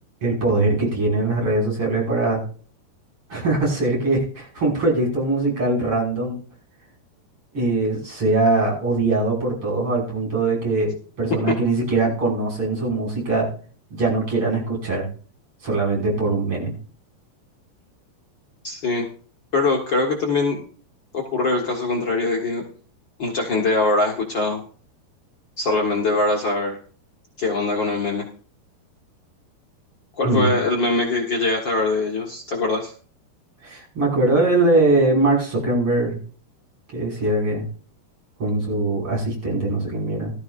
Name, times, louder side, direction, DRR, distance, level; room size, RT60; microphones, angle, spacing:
voice 1, 0.2-2.4 3.3-6.4 7.5-10.9 11.2-13.5 13.9-15.1 15.6-16.7 30.2-30.5 33.6-36.2 36.9-37.6 38.4-40.3, right 2 dB, 30° right, -3 dB, 6.4 m, -21 dB
voice 2, 18.6-19.1 19.5-20.6 21.1-22.6 23.2-24.6 25.6-26.8 27.4-28.2 30.2-32.9, left 3 dB, 85° left, 0 dB, 1.0 m, -22 dB
18.5 x 13.5 x 2.6 m, 0.41 s
omnidirectional pair, 4.8 m